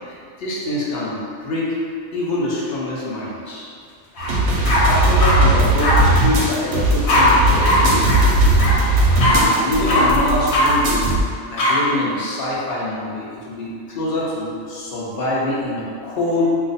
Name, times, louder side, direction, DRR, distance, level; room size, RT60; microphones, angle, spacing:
voice 1, 0.1-1.7 2.1-3.7 4.9-8.2 9.1-11.2 11.4-16.5, left 1 dB, 55° left, -6 dB, 0.8 m, -25 dB
sound 1, 4.2-4.3 4.6-5.4 5.8-5.9 7.1-7.2 7.6-7.8 8.0-8.2 8.6-8.7 9.2-9.4 9.9-10.0 10.5-10.7 11.6-11.7, left 1 dB, 90° left, 1.1 m, -18 dB
sound 2, 4.2-11.2, right 2 dB, 65° right, 0.8 m, -18 dB
2.4 x 2.4 x 3.9 m, 2.2 s
omnidirectional pair, 1.4 m